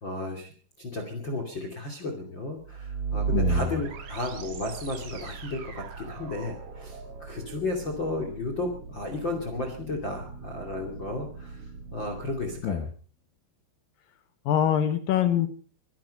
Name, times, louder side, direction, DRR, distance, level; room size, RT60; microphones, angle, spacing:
voice 1, 0.0-0.5 0.8-12.9, left 2 dB, 35° left, 4 dB, 2.3 m, -33 dB
sound 1, 2.6-12.6, right 5 dB, 85° right, 1.3 m, -36 dB
voice 2, 3.3-3.7 12.6-12.9 14.5-15.5, left 10 dB, 80° left, 10 dB, 2.0 m, -24 dB
23.5 x 11.0 x 5.4 m, 0.42 s
omnidirectional pair, 5.7 m